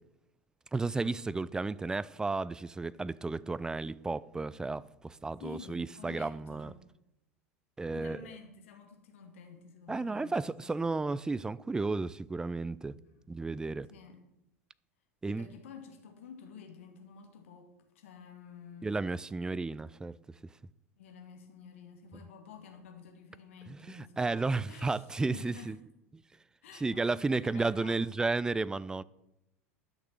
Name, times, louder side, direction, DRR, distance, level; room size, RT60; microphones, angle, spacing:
voice 1, 0.7-6.7 7.8-8.2 9.9-13.0 13.3-13.9 15.2-15.5 18.8-20.1 23.7-25.7 26.8-29.0, right 3 dB, 10° right, 0.4 m, -33 dB
voice 2, 5.4-6.8 7.9-11.0 12.9-13.0 13.9-14.2 15.3-19.0 21.0-25.7 26.6-28.0, left 6 dB, 65° left, 2.3 m, -51 dB
11.5 x 6.5 x 6.2 m
figure-of-eight pair, 80°, 8 cm